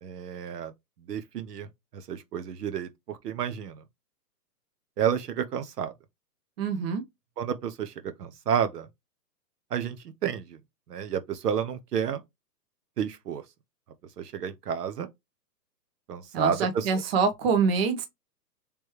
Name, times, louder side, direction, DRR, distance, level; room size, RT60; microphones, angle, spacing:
voice 1, 0.0-0.7 1.1-1.7 1.9-3.8 5.0-5.9 7.4-8.9 9.7-10.0 10.2-10.6 10.9-12.2 13.0-13.4 14.2-15.1 16.1-17.0, right 8 dB, 70° right, 0.9 m, -30 dB
voice 2, 6.6-7.0 16.3-18.1, right 5 dB, 35° right, 0.9 m, -25 dB
3.5 x 3.0 x 4.5 m
hypercardioid pair, 155°, 49 cm